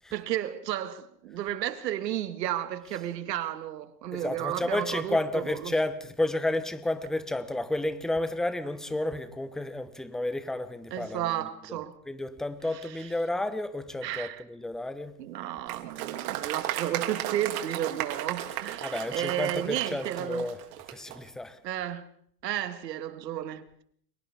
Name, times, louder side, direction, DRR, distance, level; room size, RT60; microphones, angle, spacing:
voice 1, 0.1-5.7 10.9-12.0 14.0-14.4 15.2-20.5 21.6-22.1 22.4-23.8, right 11 dB, 75° right, 2.1 m, -33 dB
voice 2, 4.1-11.8 12.1-15.2 18.8-20.6 20.9-21.6, left 1 dB, ahead, 1.0 m, -31 dB
Applause, 15.7-21.2, right 13 dB, 60° right, 2.8 m, -35 dB
30.0 x 25.0 x 3.6 m
supercardioid pair, 140°, 50 cm